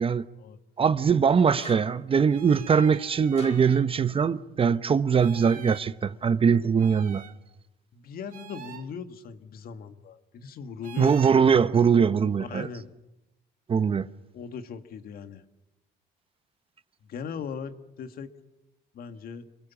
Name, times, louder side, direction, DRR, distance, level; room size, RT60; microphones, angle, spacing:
voice 1, 0.8-7.2 11.0-12.7 13.7-14.1, right 6 dB, 35° right, 0.8 m, -22 dB
sound 1, 1.4-1.5 2.3-3.9 5.2-5.9 6.8-7.4 8.3-8.9 10.8-11.4, right 10 dB, 55° right, 2.1 m, -45 dB
sound 2, 1.6-2.2 3.4-3.9, left 6 dB, 35° left, 1.9 m, -44 dB
voice 2, 7.9-11.2 12.4-12.9 14.3-15.4 17.1-18.3 18.9-19.5, left 6 dB, 60° left, 1.9 m, -39 dB
28.0 x 21.0 x 7.2 m
cardioid pair, 110°, 17 cm